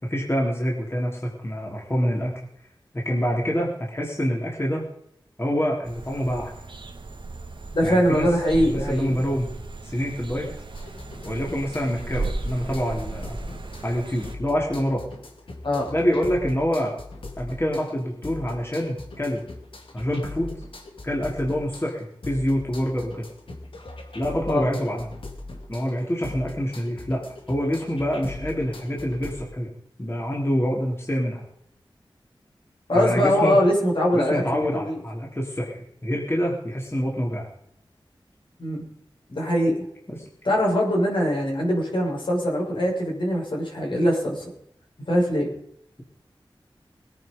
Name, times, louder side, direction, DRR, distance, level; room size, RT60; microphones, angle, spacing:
voice 1, 0.0-2.4 2.9-4.8 5.4-6.5 7.8-9.5 9.8-10.5 11.2-13.4 13.8-15.0 15.9-16.9 17.4-19.4 19.9-20.5 21.0-23.3 24.1-25.1 25.7-27.2 27.5-29.7 30.0-31.4 32.9-33.6 34.1-37.4 40.1-40.2, equal, 30° left, -1 dB, 3.4 m, -26 dB
sound 1, 5.8-14.3, right 3 dB, 65° right, 1.6 m, -36 dB
voice 2, 7.7-9.1 15.6-15.9 24.5-24.7 32.9-34.9 38.6-38.8 39.3-39.8 40.4-44.5 45.1-45.5, equal, 70° left, -2 dB, 5.9 m, -22 dB
sound 2, 10.7-29.4, left 2 dB, 85° left, 2.7 m, -40 dB
21.0 x 9.6 x 5.3 m, 0.73 s
wide cardioid pair, 70°, 9 cm